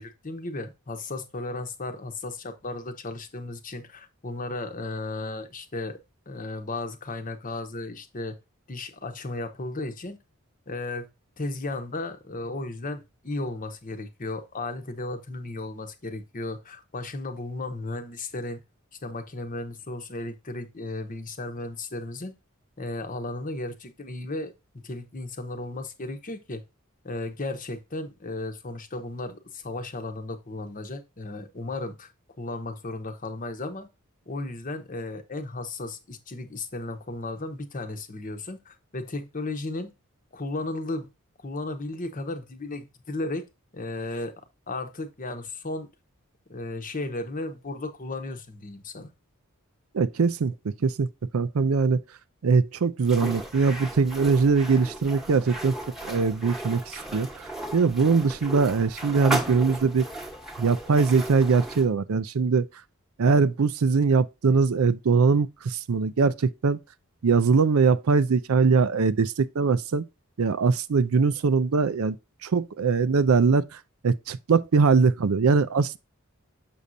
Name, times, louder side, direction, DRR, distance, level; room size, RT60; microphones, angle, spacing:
voice 1, 0.0-6.0 6.3-8.4 8.7-10.2 10.7-11.1 11.4-18.6 19.0-22.3 22.8-26.6 27.0-32.1 32.4-33.9 34.3-39.9 40.3-41.1 41.4-43.4 43.7-44.3 44.7-45.9 46.5-49.1, left 2 dB, 40° left, 0.9 m, -35 dB
voice 2, 49.9-52.0 52.4-55.8 56.0-57.4 57.7-60.1 60.6-62.6 63.2-66.8 67.2-70.0 70.4-72.2 72.4-73.6 74.0-76.0, right 4 dB, 75° right, 0.5 m, -22 dB
sound 1, 53.0-61.9, right 1 dB, ahead, 1.2 m, -35 dB
6.8 x 6.2 x 2.6 m
head